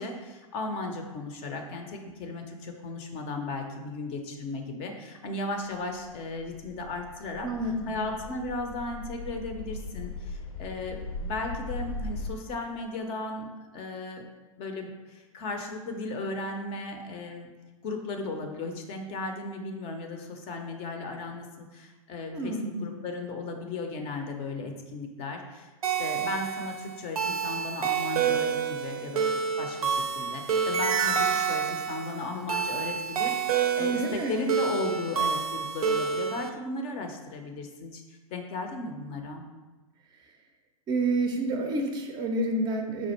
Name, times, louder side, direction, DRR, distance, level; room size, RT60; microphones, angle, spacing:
voice 1, 0.0-7.5 7.9-13.5 13.7-14.3 14.6-17.5 17.8-39.5, left 3 dB, 30° left, 4 dB, 0.5 m, -36 dB
sound 1, 5.8-12.3, left 2 dB, 75° left, 0.7 m, -39 dB
voice 2, 7.4-8.0 22.3-22.8 33.8-34.4 40.9-43.1, right 2 dB, 25° right, 3 dB, 0.5 m, -29 dB
sound 2, 25.8-36.5, right 7 dB, 80° right, 0.5 m, -28 dB
4.2 x 2.4 x 4.1 m, 1.2 s
hypercardioid pair, 110°, 19 cm